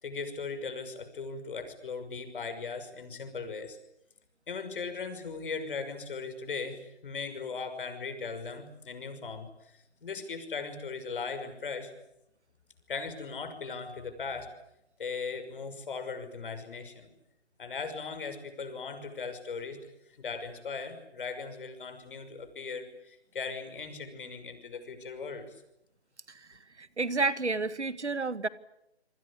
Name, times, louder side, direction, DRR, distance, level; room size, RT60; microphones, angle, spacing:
voice 1, 0.0-3.8 4.5-11.9 12.9-14.5 15.0-17.1 17.6-19.9 20.2-25.5, left 4 dB, 50° left, 9 dB, 6.1 m, -38 dB
voice 2, 26.3-28.5, right 3 dB, 85° right, 15 dB, 1.8 m, -31 dB
28.0 x 24.0 x 8.6 m, 0.81 s
figure-of-eight pair, 150°, 33 cm